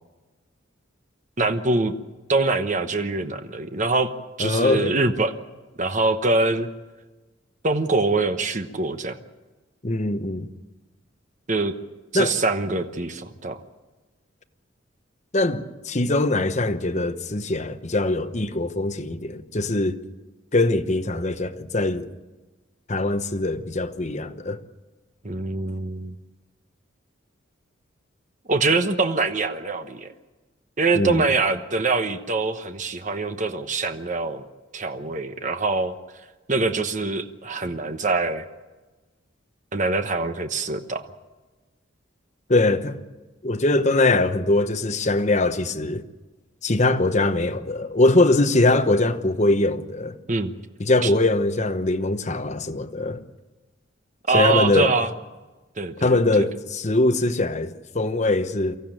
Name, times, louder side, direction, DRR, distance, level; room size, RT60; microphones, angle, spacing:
voice 1, 1.4-1.9 2.3-4.1 4.4-5.3 5.8-6.7 7.6-9.2 11.5-11.7 12.1-13.6 25.2-26.1 28.5-30.1 30.8-34.4 34.7-35.9 36.5-38.5 39.7-41.0 50.3-50.5 51.0-51.1 54.3-55.1 55.8-56.4, right 3 dB, 40° right, 1.0 m, -24 dB
voice 2, 4.4-4.9 9.8-10.5 12.1-12.4 15.3-20.0 20.5-22.1 22.9-24.6 30.9-31.2 42.5-43.0 43.4-46.0 46.6-50.1 50.8-53.2 54.3-54.9 56.0-58.8, left 2 dB, 35° left, 1.1 m, -22 dB
24.0 x 15.0 x 9.0 m
head